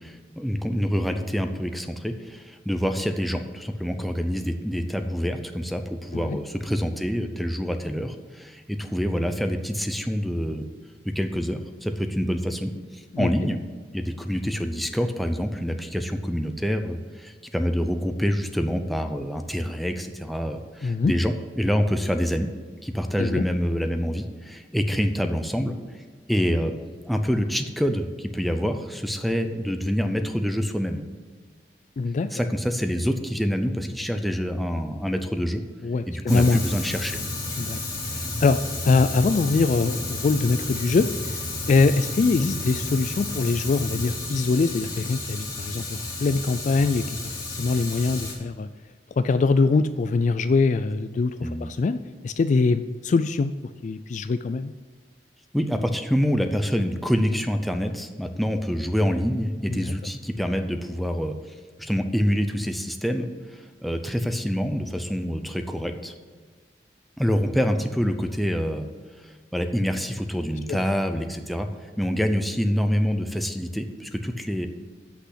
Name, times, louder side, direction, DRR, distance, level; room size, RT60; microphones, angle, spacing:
voice 1, 0.0-10.6 11.0-12.7 13.2-13.6 13.9-22.5 22.8-25.7 26.3-26.8 27.0-31.0 32.3-35.6 36.1-37.2 51.4-51.7 55.5-61.4 61.8-63.3 63.8-66.1 67.2-68.9 69.5-74.7, equal, ahead, 5 dB, 0.6 m, -26 dB
voice 2, 20.8-21.1 23.2-23.4 32.0-32.3 35.8-36.6 37.6-37.8 38.1-41.1 41.7-48.7 49.2-53.5 53.8-54.7 59.7-59.9 70.7-70.8, left 4 dB, 45° left, 12 dB, 0.3 m, -23 dB
Fire, 36.3-48.3, left 2 dB, 20° left, 2.6 m, -32 dB
8.3 x 6.2 x 8.1 m, 1.5 s
head